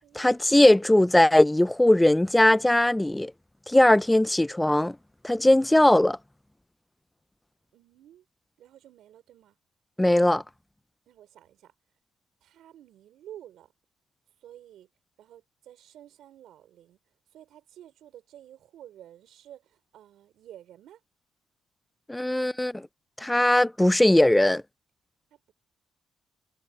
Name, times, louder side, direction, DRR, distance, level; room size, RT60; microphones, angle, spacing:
voice 1, 0.1-3.3 3.7-5.0 5.2-6.2 10.0-10.4 22.1-22.9 23.2-24.6, left 1 dB, 10° left, 0.6 m, -20 dB
voice 2, 7.7-8.3 8.6-9.6 11.1-11.7 12.4-13.7 14.4-14.9 15.2-17.0 17.3-21.0 22.2-22.9 25.3-25.5, right 11 dB, 80° right, 5.4 m, -51 dB
cardioid pair, 90°, 0 cm